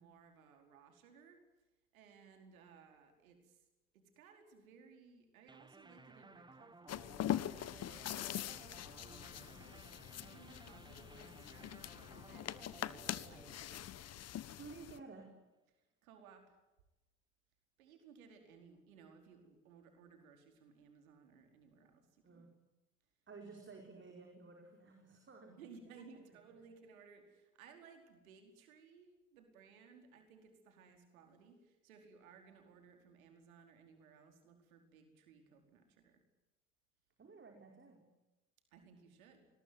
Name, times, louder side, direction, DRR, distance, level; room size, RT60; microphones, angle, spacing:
voice 1, 0.0-1.4 1.9-3.6 3.9-6.9 7.4-9.9 10.2-13.7 16.0-16.6 17.8-22.4 25.5-36.2 38.7-39.5, right 5 dB, 70° right, 5 dB, 4.9 m, -61 dB
sound 1, 5.5-14.8, right 3 dB, 10° right, 1.5 m, -59 dB
sound 2, 6.9-15.0, left 11 dB, 35° left, 1.3 m, -43 dB
voice 2, 14.6-15.4 22.2-22.5 23.3-25.5 37.2-38.0, right 4 dB, 25° right, 3 dB, 5.2 m, -54 dB
26.5 x 21.5 x 9.6 m, 1.0 s
figure-of-eight pair, 70°, 43 cm